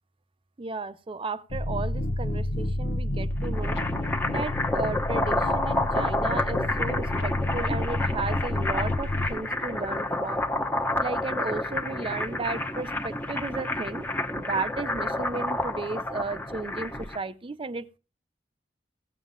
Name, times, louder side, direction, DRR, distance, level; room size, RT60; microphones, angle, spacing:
voice 1, 0.6-3.8 4.3-10.4 11.0-14.0 14.4-18.0, right 3 dB, 30° right, 0.5 m, -34 dB
sound 1, 1.5-9.4, left 1 dB, 85° left, 0.9 m, -30 dB
sound 2, 3.3-17.2, left 1 dB, 10° left, 1.0 m, -29 dB
16.5 x 7.2 x 3.7 m
head